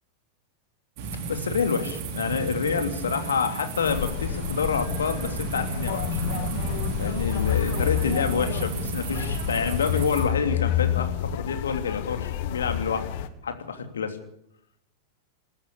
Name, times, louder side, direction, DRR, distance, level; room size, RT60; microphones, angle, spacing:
sound 1, 1.0-10.2, right 4 dB, 45° right, 5.5 m, -33 dB
voice 1, 1.3-6.2 7.0-13.1 13.4-14.2, left 6 dB, 70° left, 7 dB, 3.0 m, -28 dB
sound 2, 3.8-13.3, left 10 dB, 50° left, 1.7 m, -29 dB
21.0 x 14.5 x 8.4 m, 0.75 s
figure-of-eight pair, 90°, 0 cm